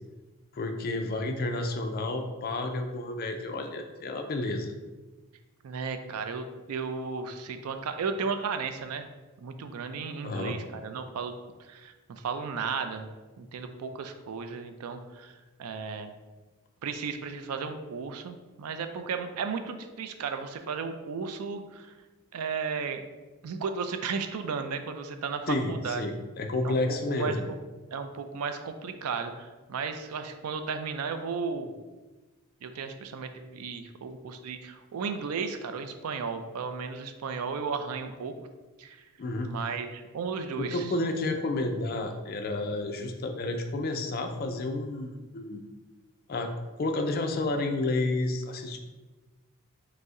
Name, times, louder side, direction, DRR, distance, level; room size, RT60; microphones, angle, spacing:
voice 1, 0.5-4.7 10.2-10.6 25.5-27.5 39.2-39.5 40.6-45.6 46.3-46.5 46.8-48.8, left 2 dB, 40° left, 5 dB, 0.4 m, -30 dB
voice 2, 5.6-9.1 9.4-11.3 11.7-13.1 13.4-15.3 15.6-16.1 16.8-21.9 22.3-23.0 23.4-26.0 26.6-27.4 27.9-31.7 32.6-38.4 38.8-39.0 39.4-40.9, right 5 dB, 80° right, 8 dB, 0.4 m, -34 dB
5.2 x 2.1 x 3.6 m, 1.2 s
head